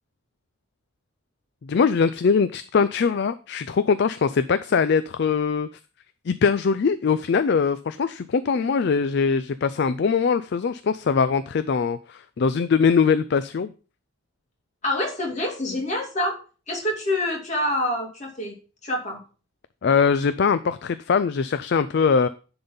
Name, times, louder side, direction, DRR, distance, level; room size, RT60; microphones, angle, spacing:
voice 1, 1.6-5.7 6.2-13.7 19.8-22.3, left 5 dB, 50° left, 13 dB, 0.4 m, -22 dB
voice 2, 14.8-16.4 16.7-18.5 18.8-19.2, left 1 dB, 35° left, 0 dB, 2.4 m, -26 dB
10.5 x 4.0 x 5.5 m, 0.36 s
head